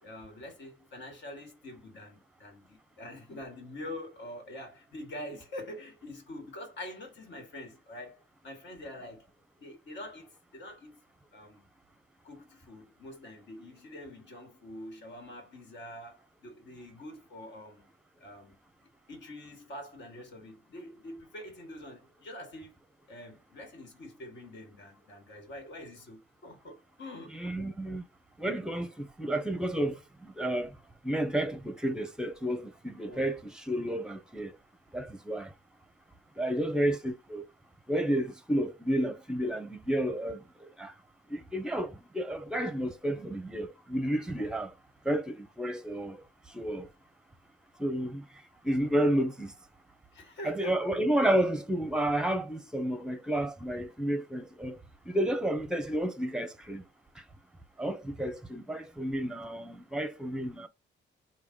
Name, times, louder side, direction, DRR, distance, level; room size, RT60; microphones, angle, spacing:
voice 1, 0.0-9.3 9.6-11.0 11.3-11.7 12.2-17.9 18.2-18.6 19.1-22.8 23.1-27.6 33.0-33.3 36.5-36.6 50.1-50.9, left 1 dB, 65° left, 1.7 m, -45 dB
voice 2, 27.3-28.0 28.4-30.7 31.0-34.6 34.9-35.5 36.4-37.4 37.9-40.9 41.3-44.7 45.0-46.2 46.5-46.9 47.8-48.2 48.6-49.5 50.4-54.8 55.1-56.8 57.2-57.3 57.8-60.7, right 1 dB, 5° right, 0.7 m, -31 dB
3.2 x 2.3 x 3.6 m
cardioid pair, 90°, 20 cm